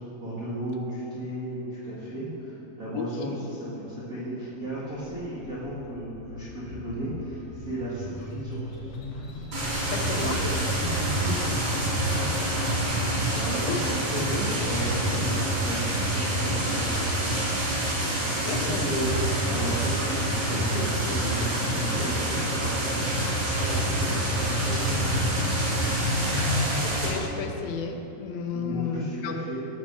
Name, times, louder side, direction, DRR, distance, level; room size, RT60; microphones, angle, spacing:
voice 1, 0.2-8.6 10.2-12.3 13.3-15.3 15.6-17.3 18.2-23.1 23.6-25.1 28.5-29.7, right 1 dB, 30° right, -10 dB, 1.9 m, -34 dB
voice 2, 2.9-3.4 9.9-10.5 13.7-13.9 18.4-18.8 26.8-29.3, left 6 dB, 80° left, 4 dB, 2.8 m, -33 dB
sound 1, 4.8-15.2 15.7-16.9, left 1 dB, 50° left, 2.4 m, -42 dB
sound 2, 9.5-27.1, right 1 dB, 50° right, 4.3 m, -26 dB
17.0 x 5.7 x 6.3 m, 2.9 s
omnidirectional pair, 4.2 m